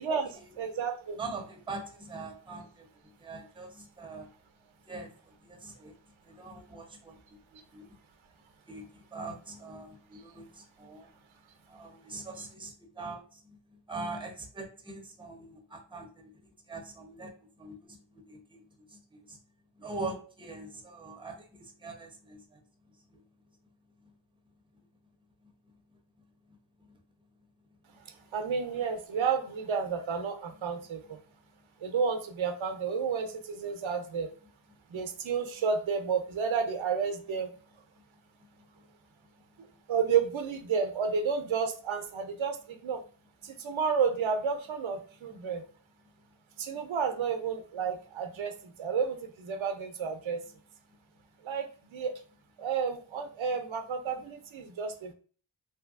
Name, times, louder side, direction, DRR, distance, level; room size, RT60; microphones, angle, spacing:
voice 1, 0.0-1.2 28.3-31.2 31.8-34.3 34.9-37.5 39.9-43.0 43.4-45.6 46.6-50.4 51.4-52.1 52.6-55.1, right 6 dB, 85° right, 7 dB, 0.6 m, -31 dB
voice 2, 1.2-2.9 3.2-4.3 4.9-5.9 6.3-7.2 7.7-7.9 8.7-11.1 11.7-16.3 16.7-18.6 18.9-19.4 19.8-22.6 23.1-23.2 26.5-26.6 26.9-27.0 34.9-35.0 45.3-45.4, right 3 dB, 10° right, 3 dB, 0.6 m, -43 dB
2.9 x 2.6 x 2.3 m, 0.42 s
wide cardioid pair, 80°, 46 cm